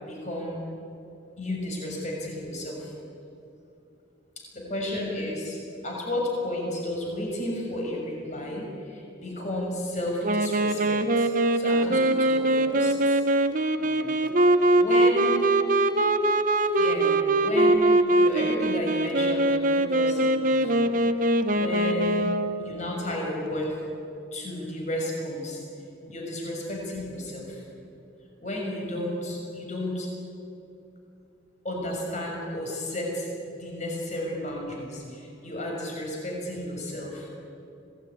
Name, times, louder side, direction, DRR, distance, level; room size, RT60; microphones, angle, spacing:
voice 1, 0.0-0.6 1.4-2.9 4.4-13.2 13.8-14.2 14.7-15.4 16.8-22.3 22.6-23.7 24.3-25.6 26.1-27.6 28.4-30.1 31.6-33.3 33.5-37.3, left 1 dB, 40° left, -1 dB, 6.4 m, -33 dB
Wind instrument woodwind instrument, 10.2-22.7, right 1 dB, 45° right, 1.1 m, -22 dB
26.0 x 18.5 x 9.9 m, 2.8 s
head